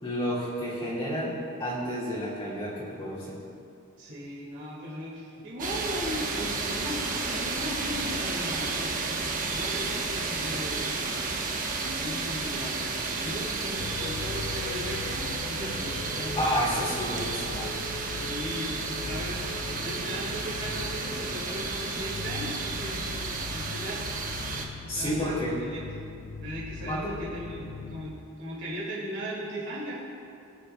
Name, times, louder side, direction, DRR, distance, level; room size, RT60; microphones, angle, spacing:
voice 1, 0.0-3.4 16.4-17.7 24.9-25.6 26.9-27.2, equal, 25° left, -9 dB, 1.9 m, -30 dB
voice 2, 4.0-11.1 11.8-17.2 18.2-24.1 24.5-25.8 26.2-30.0, equal, 60° right, -7 dB, 2.1 m, -38 dB
sound 1, 5.6-24.7, right 3 dB, 40° right, 1.0 m, -32 dB
sound 2, 13.8-28.1, left 4 dB, 50° left, 0.4 m, -40 dB
20.5 x 9.8 x 2.2 m, 2.6 s
head